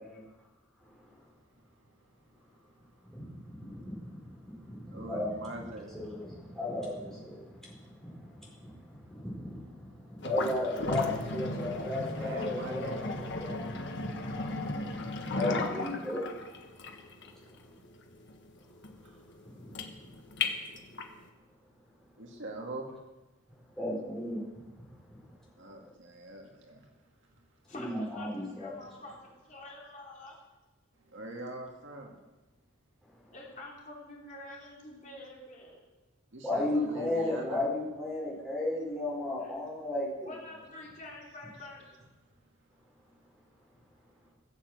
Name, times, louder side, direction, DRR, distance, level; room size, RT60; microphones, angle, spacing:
voice 1, 4.9-5.9 12.2-13.6 22.2-22.9 25.6-26.8 31.1-32.1 36.3-37.6, right 1 dB, 60° right, 1 dB, 2.1 m, -43 dB
voice 2, 5.9-6.2 6.6-7.3 10.2-11.0 11.3-12.9 13.4-13.5 15.3-16.2 23.8-24.4 27.7-28.7 36.4-40.3, left 1 dB, ahead, -6 dB, 4.7 m, -33 dB
sound 1, 10.2-21.2, left 2 dB, 55° left, 1.4 m, -35 dB
voice 3, 27.7-28.3 28.6-30.4 33.3-35.8 39.4-39.5 40.2-41.8, left 2 dB, 35° left, -3 dB, 3.3 m, -47 dB
16.0 x 7.5 x 7.9 m, 1.1 s
head